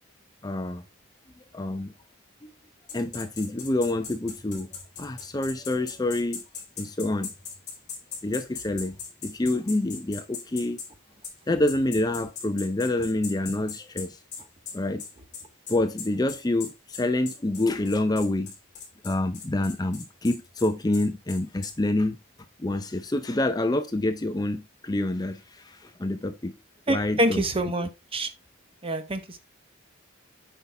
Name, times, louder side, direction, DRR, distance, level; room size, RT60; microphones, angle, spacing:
voice 1, 0.4-0.8 1.5-1.9 2.9-4.7 5.0-6.4 6.8-7.3 8.2-9.0 9.2-10.8 11.5-14.2 14.7-15.0 15.7-18.5 19.0-22.2 22.6-26.6 26.9-27.4 27.8-27.9, left 2 dB, 20° left, 0.5 m, -27 dB
sound 1, 2.9-10.9 11.2-11.4 11.7-21.7, left 6 dB, 35° left, 2.9 m, -39 dB
voice 2, 26.9-28.3 28.8-29.4, right 1 dB, 25° right, 1.0 m, -26 dB
8.5 x 5.6 x 3.3 m
head